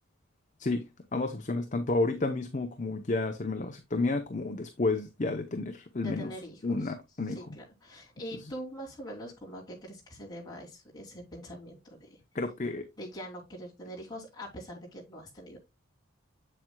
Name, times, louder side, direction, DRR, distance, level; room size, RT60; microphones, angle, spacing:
voice 1, 1.1-6.3 6.6-7.4 12.3-12.8, left 3 dB, 35° left, 0.7 m, -31 dB
voice 2, 6.0-6.9 7.2-12.2 13.0-15.6, equal, 20° left, 2.8 m, -43 dB
7.6 x 7.6 x 2.2 m
head